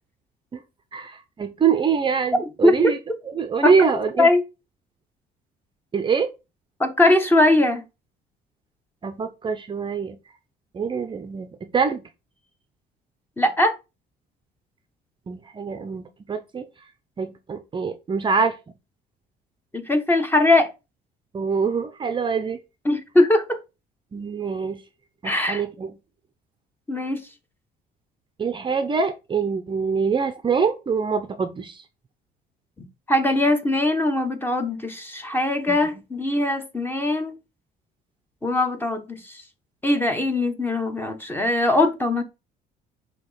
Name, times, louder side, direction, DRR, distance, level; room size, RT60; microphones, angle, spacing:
voice 1, 0.9-3.0 3.2-4.3 5.9-6.3 9.0-10.2 10.7-12.0 15.3-16.6 17.2-18.6 21.3-22.6 24.1-24.8 25.2-25.9 28.4-31.8 35.7-35.8, right 5 dB, 30° right, 0.7 m, -24 dB
voice 2, 6.8-7.8 13.4-13.7 19.7-20.7 22.8-23.6 25.2-25.6 26.9-27.3 33.1-37.3 38.4-39.4 39.8-42.2, left 2 dB, 10° left, 1.2 m, -21 dB
6.1 x 2.9 x 5.6 m
cardioid pair, 110°, 17 cm